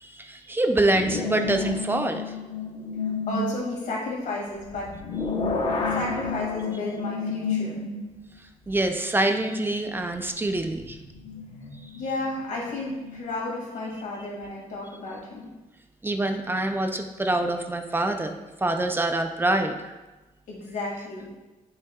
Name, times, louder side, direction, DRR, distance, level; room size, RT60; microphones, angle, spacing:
voice 1, 0.0-2.3 8.7-11.0 16.0-18.3 18.6-19.9, right 2 dB, 15° right, 5 dB, 0.4 m, -25 dB
sound 1, 0.9-3.6 4.6-8.2 8.8-8.9 10.6-13.2, left 4 dB, 45° left, 0.8 m, -31 dB
voice 2, 3.3-4.9 5.3-5.5 5.9-7.8 11.9-15.5 20.5-21.3, left 2 dB, 90° left, -3 dB, 2.1 m, -32 dB
10.5 x 5.6 x 2.3 m, 1.1 s
wide cardioid pair, 140°, 13 cm